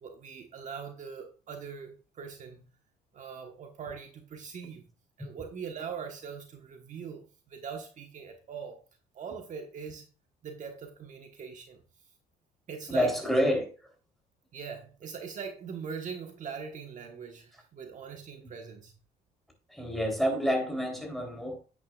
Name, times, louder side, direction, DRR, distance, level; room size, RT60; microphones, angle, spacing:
voice 1, 0.0-2.7 3.1-4.8 5.2-8.8 9.1-10.1 10.4-11.8 12.7-13.1 14.5-18.9, right 6 dB, 45° right, 1.4 m, -41 dB
voice 2, 12.9-13.7 19.7-21.6, equal, ahead, 3.6 m, -28 dB
10.0 x 9.1 x 2.4 m
cardioid pair, 110°, 17 cm